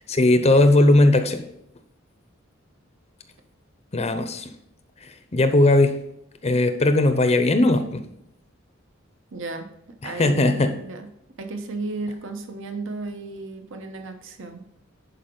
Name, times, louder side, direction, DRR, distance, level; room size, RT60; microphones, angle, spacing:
voice 1, 0.1-1.4 3.9-4.5 5.0-6.0 6.4-8.1 10.0-10.7, left 2 dB, 30° left, 8 dB, 0.6 m, -18 dB
voice 2, 9.3-9.7 10.0-11.1 11.4-14.6, right 2 dB, 65° right, 6 dB, 1.0 m, -34 dB
11.0 x 4.8 x 3.8 m, 0.78 s
head